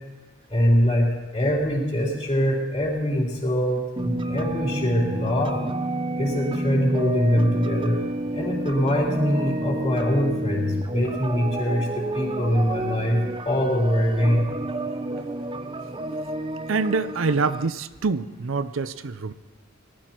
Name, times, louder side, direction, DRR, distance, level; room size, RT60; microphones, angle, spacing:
voice 1, 0.5-1.1 1.3-5.6 6.2-8.0 8.3-13.2 13.4-14.5, equal, 30° left, -8 dB, 3.8 m, -23 dB
sound 1, 4.0-17.7, right 1 dB, 25° right, 0.6 m, -30 dB
voice 2, 16.7-19.3, right 4 dB, 75° right, 13 dB, 0.6 m, -25 dB
19.0 x 12.5 x 4.5 m, 1.2 s
head